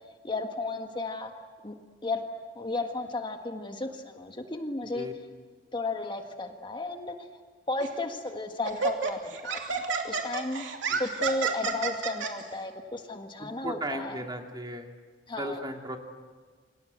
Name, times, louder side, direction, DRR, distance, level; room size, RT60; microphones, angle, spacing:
voice 1, 0.2-1.3 1.6-1.7 2.0-2.2 2.5-5.1 5.7-7.1 7.7-10.6 11.0-14.2 15.3-15.6, left 2 dB, 25° left, 5 dB, 1.6 m, -34 dB
Laughter, 7.8-8.0 8.6-12.3, right 5 dB, 90° right, 3.0 m, -30 dB
voice 2, 13.4-14.9 15.4-16.0, right 1 dB, 25° right, 3 dB, 2.3 m, -36 dB
29.0 x 25.0 x 8.1 m, 1.5 s
head